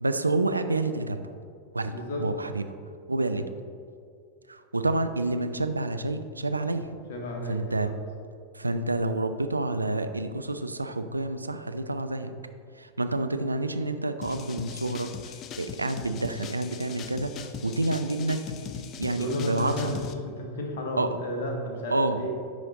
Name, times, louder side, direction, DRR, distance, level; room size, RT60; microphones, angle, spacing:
voice 1, 0.0-1.3 1.7-2.7 3.1-3.5 4.5-6.9 7.5-7.9 8.5-12.3 12.8-18.4 18.8-19.9 21.0-21.2 21.9-22.2, right 2 dB, 80° right, 9 dB, 0.3 m, -29 dB
voice 2, 1.9-2.2 7.1-7.9 19.0-20.0 20.2-22.3, left 1 dB, 55° left, 1 dB, 1.1 m, -33 dB
sound 1, 14.2-20.1, left 7 dB, 35° left, 0.4 m, -40 dB
9.9 x 3.4 x 3.8 m, 2.3 s
figure-of-eight pair, 90°, 0 cm